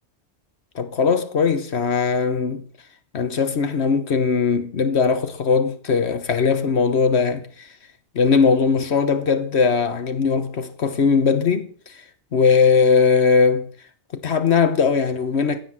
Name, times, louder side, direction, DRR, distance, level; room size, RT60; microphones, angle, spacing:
voice 1, 0.7-2.6 3.1-7.7 8.1-12.0 12.3-13.6 14.1-15.6, left 5 dB, 80° left, 1.4 m, -19 dB
15.5 x 8.6 x 7.6 m
omnidirectional pair, 1.1 m